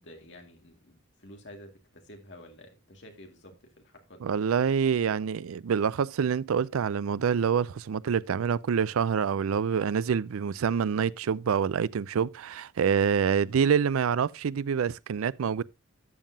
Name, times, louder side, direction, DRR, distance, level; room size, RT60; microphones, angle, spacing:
voice 1, 0.0-4.3, left 1 dB, 55° left, 2.1 m, -50 dB
voice 2, 4.2-15.6, right 7 dB, 85° right, 0.4 m, -26 dB
12.5 x 7.3 x 2.7 m
head